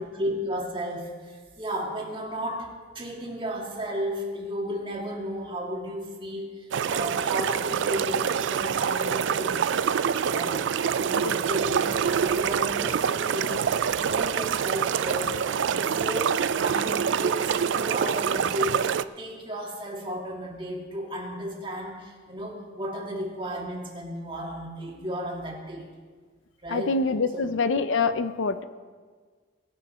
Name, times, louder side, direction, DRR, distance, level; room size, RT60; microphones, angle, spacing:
voice 1, 0.0-2.7 2.9-9.9 10.3-10.7 10.9-18.9 19.2-25.9 26.6-27.0 27.3-27.5, equal, 25° right, -1 dB, 2.0 m, -34 dB
sound 1, 6.7-19.0, right 7 dB, 70° right, 0.3 m, -26 dB
voice 2, 26.7-28.6, left 4 dB, 80° left, 12 dB, 0.6 m, -25 dB
18.5 x 7.1 x 5.6 m, 1.5 s
head